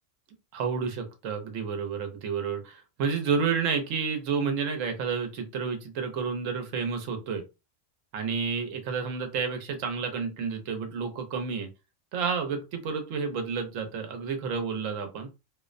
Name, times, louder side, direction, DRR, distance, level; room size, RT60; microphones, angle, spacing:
voice 1, 0.5-7.4 8.1-11.7 12.1-15.3, right 5 dB, 90° right, 6 dB, 1.0 m, -30 dB
2.5 x 2.0 x 2.4 m, 0.28 s
omnidirectional pair, 1.3 m